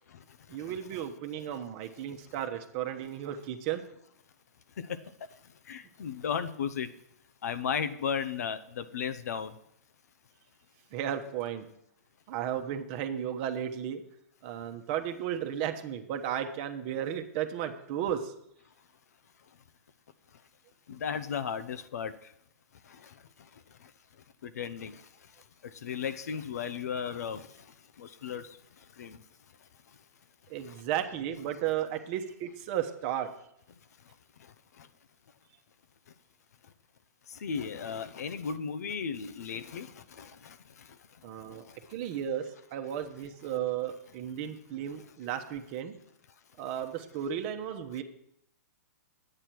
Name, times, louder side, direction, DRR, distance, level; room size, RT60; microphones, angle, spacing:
voice 1, 0.5-3.8 10.9-11.7 12.3-14.0 14.4-18.3 30.5-33.3 41.2-41.6 41.9-42.4 42.7-45.9 46.6-48.0, right 10 dB, 40° right, 1.0 m, -34 dB
voice 2, 5.7-6.9 7.4-9.5 21.0-22.1 24.6-24.9 25.8-27.4 28.0-28.4 29.0-29.2 37.4-39.9, left 7 dB, 70° left, 0.7 m, -34 dB
9.9 x 8.8 x 4.6 m
hypercardioid pair, 130°, 9 cm